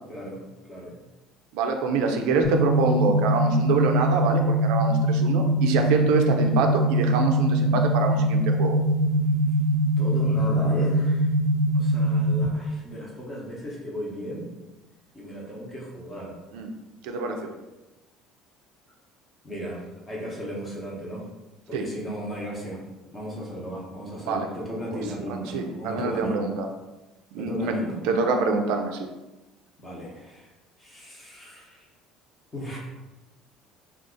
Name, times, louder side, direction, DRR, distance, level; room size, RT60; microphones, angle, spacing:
voice 1, 0.1-1.0 10.0-11.3 11.7-14.5 15.1-16.4 19.4-21.3 21.7-22.8 23.1-26.4 27.4-28.0 29.8-30.5 30.8-31.9 32.5-32.8, equal, 20° left, -3 dB, 0.9 m, -35 dB
voice 2, 1.5-8.8 16.5-16.7 17.0-17.4 21.7-21.8 24.3-24.5 25.5-26.7 27.3-27.8 28.0-29.1, right 4 dB, 85° right, 4 dB, 0.4 m, -25 dB
sound 1, 2.4-12.4, right 1 dB, 85° left, 0.9 m, -22 dB
2.6 x 2.4 x 3.6 m, 1.1 s
cardioid pair, 135°, 0 cm